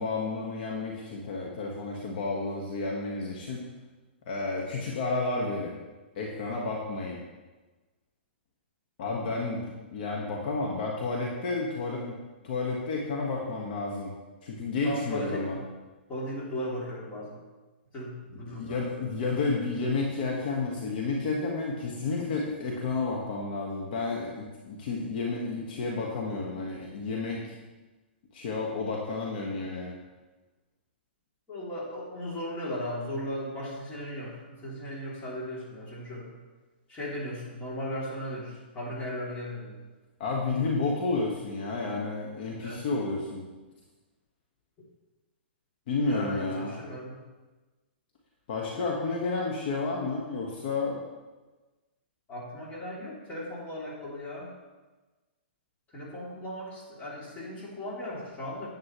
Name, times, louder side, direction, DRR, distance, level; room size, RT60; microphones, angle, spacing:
voice 1, 0.0-3.6 4.3-5.7 6.2-7.2 9.0-12.1 12.4-14.1 14.4-15.6 18.5-27.6 28.3-29.9 40.2-43.4 45.9-46.7 48.5-51.0, left 3 dB, 55° left, -2 dB, 1.6 m, -31 dB
voice 2, 14.8-15.5 16.1-17.4 17.9-19.0 31.5-36.3 36.9-39.8 42.6-42.8 46.0-47.2 52.3-54.5 55.9-58.7, left 1 dB, 20° left, -5 dB, 3.2 m, -37 dB
9.9 x 9.0 x 3.2 m, 1.2 s
hypercardioid pair, 135°, 6 cm